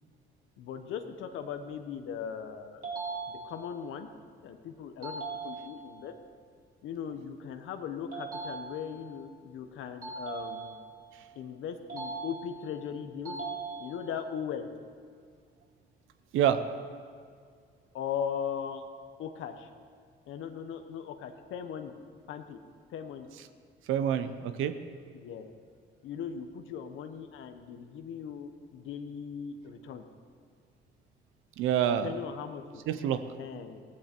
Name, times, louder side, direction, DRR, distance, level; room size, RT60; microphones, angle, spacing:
voice 1, 0.6-2.8 3.4-4.1 4.4-6.1 6.8-10.8 11.3-13.4 13.8-14.7 17.9-18.8 19.2-19.7 20.3-21.9 22.3-22.6 22.9-23.3 25.1-25.5 26.0-30.0 32.0-32.8 33.4-33.8, left 7 dB, 85° left, 7 dB, 1.0 m, -38 dB
sound 1, 2.8-3.8 5.0-6.0 8.1-9.1 10.0-11.1 11.9-12.8 13.2-14.2, right 4 dB, 45° right, 4.4 m, -40 dB
voice 2, 23.9-24.8 31.6-32.1 32.9-33.2, right 9 dB, 90° right, 10 dB, 0.7 m, -27 dB
15.0 x 15.0 x 4.5 m, 2.1 s
cardioid pair, 90°, 20 cm